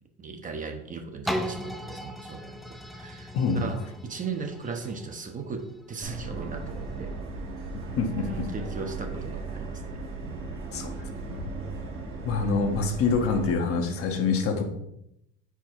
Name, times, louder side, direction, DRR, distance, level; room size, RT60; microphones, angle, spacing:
voice 1, 0.2-7.1 8.2-10.0 12.4-12.6, right 4 dB, 25° right, 5 dB, 0.8 m, -37 dB
sound 1, 1.3-7.0 7.6-7.7, equal, ahead, 0.6 m, -37 dB
Subway metro underground, 6.0-13.5, right 3 dB, 45° right, 1.1 m, -36 dB
voice 2, 8.0-8.5 10.7-10.9 11.3-11.6 12.2-14.6, left 4 dB, 50° left, 4 dB, 1.1 m, -26 dB
4.7 x 4.6 x 4.5 m, 0.81 s
supercardioid pair, 100°, 29 cm